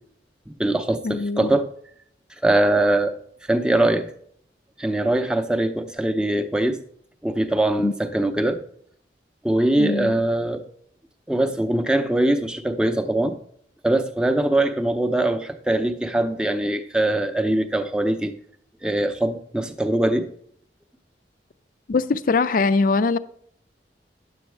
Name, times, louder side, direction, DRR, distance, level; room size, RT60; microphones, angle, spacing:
voice 1, 0.5-1.7 2.4-3.1 3.5-4.1 4.8-6.8 7.2-8.6 9.4-10.7 11.3-13.4 13.8-18.3 18.8-20.3, right 1 dB, 5° right, 0.6 m, -22 dB
voice 2, 1.0-1.6 7.8-7.9 9.8-10.2 21.9-23.2, left 4 dB, 50° left, 0.4 m, -22 dB
10.0 x 7.1 x 3.3 m
head